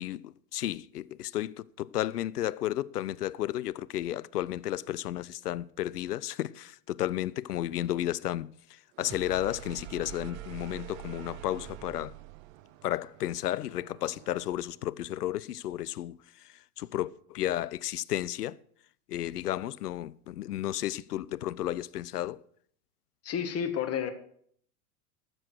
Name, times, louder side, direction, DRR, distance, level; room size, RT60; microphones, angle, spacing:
voice 1, 0.0-8.5 9.0-12.1 12.8-16.2 16.8-18.5 19.1-22.4, left 13 dB, 85° left, 0.6 m, -33 dB
sound 1, 8.9-14.8, right 13 dB, 60° right, 1.0 m, -46 dB
voice 2, 23.2-24.1, left 8 dB, 30° left, 1.8 m, -30 dB
12.5 x 7.8 x 6.2 m
hypercardioid pair, 90°, 46 cm